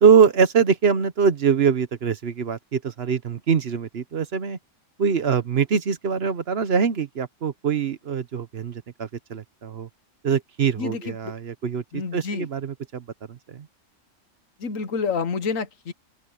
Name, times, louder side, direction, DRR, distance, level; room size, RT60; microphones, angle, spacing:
voice 1, 0.0-4.6 5.0-9.9 10.2-13.7, right 6 dB, 55° right, 1.1 m, -23 dB
voice 2, 10.8-11.2 11.9-12.5 14.6-15.9, left 5 dB, 85° left, 1.6 m, -28 dB
open air
omnidirectional pair, 1.3 m